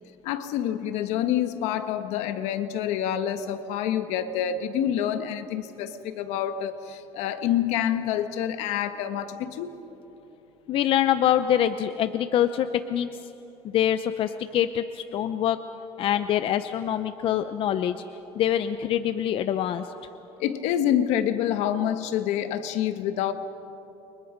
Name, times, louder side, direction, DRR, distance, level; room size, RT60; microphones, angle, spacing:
voice 1, 0.2-9.7 20.4-23.3, left 10 dB, 80° left, 9 dB, 1.4 m, -27 dB
voice 2, 10.7-13.3 13.6-15.6 16.0-18.0 18.3-19.9, left 10 dB, 55° left, 10 dB, 0.7 m, -25 dB
29.5 x 23.5 x 5.2 m, 3.0 s
cardioid pair, 125°, 11 cm